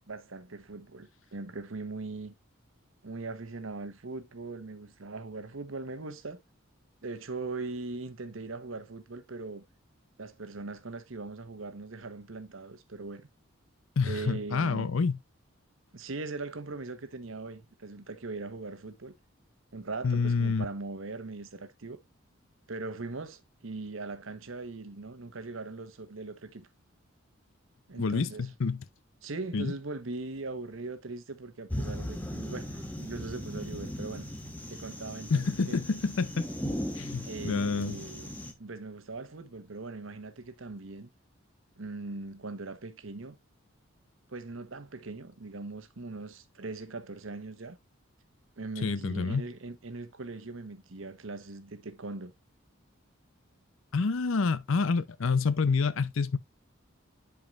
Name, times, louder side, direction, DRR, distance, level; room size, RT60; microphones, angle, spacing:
voice 1, 0.1-2.3 3.0-6.4 7.0-9.6 10.2-13.3 14.0-14.9 15.9-19.1 19.7-22.0 22.7-26.7 27.9-28.5 29.2-34.3 34.7-35.8 37.2-38.3 38.6-41.1 41.8-43.4 44.3-47.8 48.6-52.3, right 3 dB, 70° right, 1.0 m, -40 dB
voice 2, 14.0-15.2 20.0-20.7 27.9-28.8 29.5-29.7 35.3-36.5 37.0-38.0 48.8-49.4 53.9-56.4, left 4 dB, 70° left, 0.6 m, -28 dB
sound 1, 31.7-38.5, equal, 10° left, 1.0 m, -38 dB
10.5 x 4.7 x 2.4 m
head